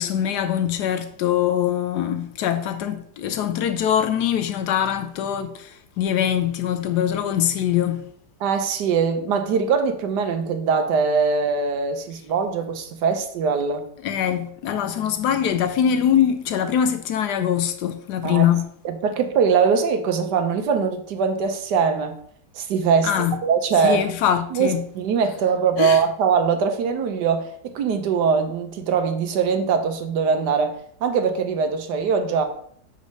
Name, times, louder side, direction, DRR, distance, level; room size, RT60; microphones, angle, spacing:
voice 1, 0.0-8.1 14.0-18.6 23.0-23.4 23.8-24.8 25.8-26.0, left 9 dB, 75° left, 1.1 m, -23 dB
voice 2, 8.4-13.8 18.2-18.5 18.8-22.1 22.5-24.0 24.5-32.4, right 6 dB, 70° right, 1.3 m, -22 dB
5.1 x 4.1 x 5.2 m
omnidirectional pair, 1.9 m